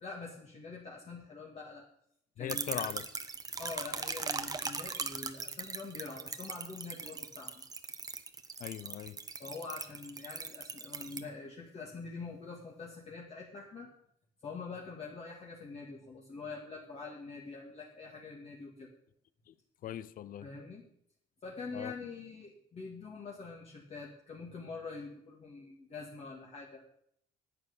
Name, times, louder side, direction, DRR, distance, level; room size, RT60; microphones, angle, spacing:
voice 1, 0.0-1.9 2.4-3.0 3.6-7.5 9.4-13.9 14.4-18.9 20.4-20.8 21.4-26.8, left 4 dB, 40° left, 2.4 m, -45 dB
voice 2, 2.4-3.1 8.6-9.2 19.5-19.6 19.8-20.5 21.7-21.9, left 11 dB, 55° left, 0.7 m, -40 dB
sound 1, 2.5-11.2, right 4 dB, 20° right, 1.0 m, -40 dB
11.0 x 9.1 x 7.1 m
cardioid pair, 110°, 17 cm